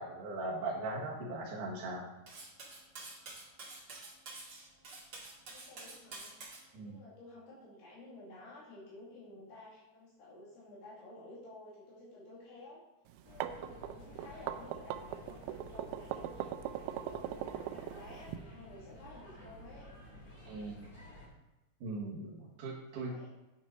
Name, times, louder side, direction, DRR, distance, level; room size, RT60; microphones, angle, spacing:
voice 1, 0.0-2.1 6.7-7.0 20.4-20.8 21.8-23.2, right 2 dB, 60° right, -5 dB, 2.5 m, -39 dB
Cutlery silverware, 2.3-6.6, right 3 dB, 40° right, 2.4 m, -48 dB
voice 2, 5.5-6.3 6.8-12.8 13.2-19.9 22.2-23.3, left 2 dB, 75° left, -7 dB, 4.5 m, -53 dB
sound 1, 13.1-18.4, right 12 dB, 80° right, 2.4 m, -39 dB
sound 2, 13.2-21.3, equal, 20° left, 2.9 m, -53 dB
9.7 x 6.3 x 5.3 m, 1.1 s
omnidirectional pair, 4.8 m